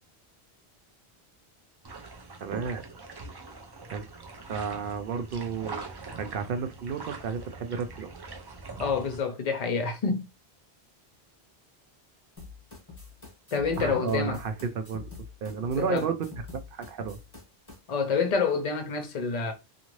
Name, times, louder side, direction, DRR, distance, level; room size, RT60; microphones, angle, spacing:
sound 1, 1.8-9.2, right 3 dB, 40° right, 0.3 m, -43 dB
voice 1, 2.4-2.8 3.9-4.1 4.5-8.1 13.8-15.0 15.4-16.3 16.5-17.2, right 6 dB, 65° right, 0.7 m, -32 dB
voice 2, 8.8-10.3 13.5-14.4 15.8-16.1 17.9-19.5, left 5 dB, 45° left, 0.7 m, -27 dB
sound 2, 12.4-17.8, left 4 dB, 20° left, 1.0 m, -45 dB
2.5 x 2.5 x 3.0 m
omnidirectional pair, 1.1 m